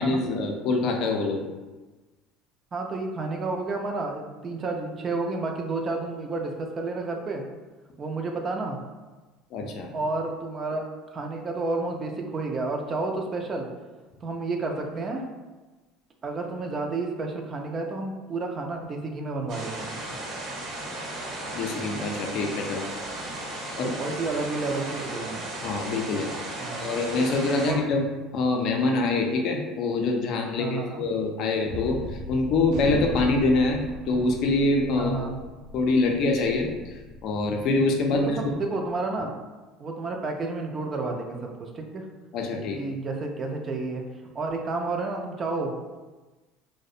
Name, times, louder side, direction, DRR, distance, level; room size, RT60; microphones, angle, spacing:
voice 1, 0.0-1.4 9.5-9.9 21.5-22.9 23.8-23.9 25.6-26.3 26.8-28.1 28.3-32.0 32.3-33.8 34.1-35.1 35.7-36.7 37.2-38.4 42.3-42.8, left 3 dB, 60° left, 2 dB, 0.4 m, -25 dB
voice 2, 2.7-7.4 8.0-8.8 9.9-10.8 11.1-13.7 14.2-15.2 16.2-20.0 23.8-25.4 26.6-26.9 27.6-27.8 30.6-31.0 34.9-35.4 38.1-39.3 39.8-42.1 42.7-44.0 44.3-45.7, right 3 dB, 35° right, 2 dB, 0.4 m, -30 dB
sound 1, 19.5-27.7, right 1 dB, 70° right, 1.0 m, -35 dB
Gunshot gunfire, 31.6-38.2, equal, 85° right, 0.6 m, -38 dB
2.3 x 2.1 x 2.6 m, 1.2 s
supercardioid pair, 105°, 0 cm